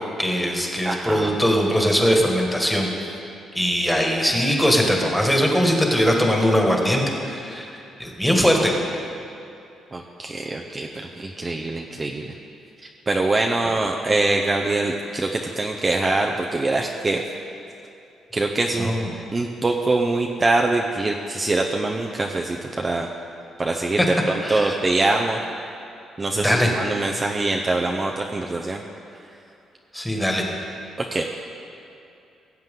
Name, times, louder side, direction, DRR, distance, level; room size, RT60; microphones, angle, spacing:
voice 1, 0.2-3.1 3.5-8.7 18.8-19.1 24.0-24.1 24.4-24.8 26.4-26.7 29.9-30.4, equal, 5° left, 0 dB, 1.8 m, -21 dB
voice 2, 0.8-1.3 9.9-12.3 13.1-17.2 18.3-18.9 19.3-23.1 23.6-24.0 24.3-25.4 26.2-28.8 31.1-31.2, right 2 dB, 25° right, 1 dB, 0.6 m, -24 dB
17.5 x 7.6 x 3.8 m, 2.7 s
cardioid pair, 90°, 0 cm